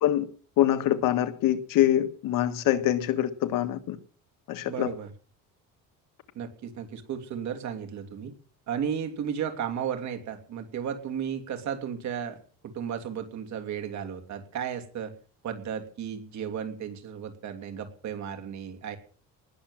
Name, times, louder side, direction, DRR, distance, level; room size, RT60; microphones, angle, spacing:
voice 1, 0.6-4.0 4.5-4.9, left 12 dB, 70° left, 1.6 m, -24 dB
voice 2, 4.7-5.1 6.3-8.3 8.7-15.1 15.4-19.0, right 8 dB, 55° right, 3.1 m, -34 dB
20.0 x 7.5 x 7.5 m
cardioid pair, 145°, 34 cm